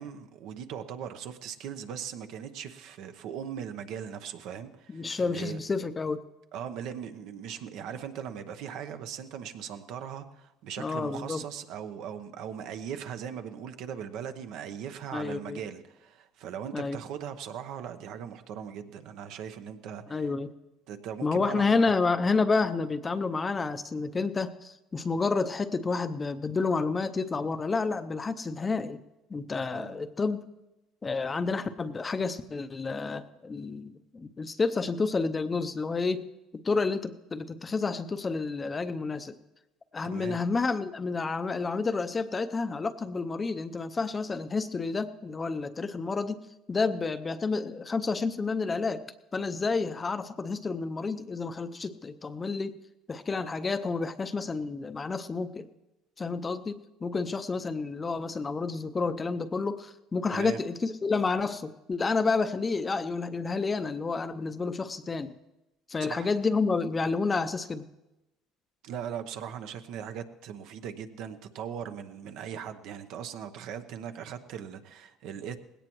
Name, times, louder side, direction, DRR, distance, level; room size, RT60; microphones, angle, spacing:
voice 1, 0.0-5.6 6.5-20.3 20.9-21.8 29.7-30.0 40.0-40.4 60.3-60.6 66.0-66.3 68.8-75.6, right 8 dB, 70° right, 8 dB, 0.9 m, -39 dB
voice 2, 4.9-6.2 10.8-11.4 15.1-15.6 16.7-17.0 20.1-20.5 21.2-29.0 29.3-30.4 31.0-36.2 36.6-39.4 39.9-49.0 49.3-52.8 53.1-55.7 56.2-65.4 65.9-67.9, left 4 dB, 25° left, 10 dB, 0.6 m, -30 dB
19.0 x 17.0 x 3.1 m, 0.98 s
supercardioid pair, 105°, 0 cm